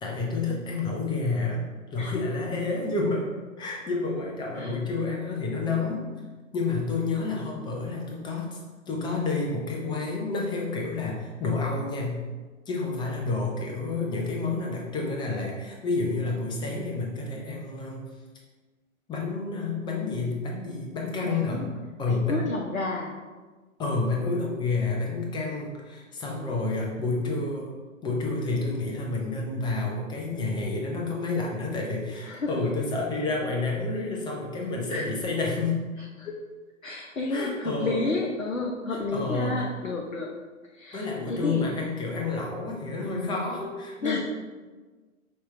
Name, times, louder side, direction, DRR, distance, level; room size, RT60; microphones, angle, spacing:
voice 1, 0.0-1.6 1.9-3.2 3.6-6.0 6.5-8.6 8.9-12.2 12.7-18.1 19.1-21.6 22.0-22.4 23.8-27.7 28.0-35.8 37.3-38.0 39.1-39.5 40.9-44.2, left 3 dB, 10° left, -1 dB, 0.6 m, -29 dB
voice 2, 21.2-21.7 22.1-23.2 26.3-26.7 32.2-32.6 34.9-35.1 36.0-36.4 36.8-40.3 40.7-41.7 43.0-43.5 44.0-44.2, left 3 dB, 90° left, -1 dB, 0.7 m, -31 dB
5.5 x 3.0 x 3.2 m, 1.3 s
figure-of-eight pair, 105°, 39 cm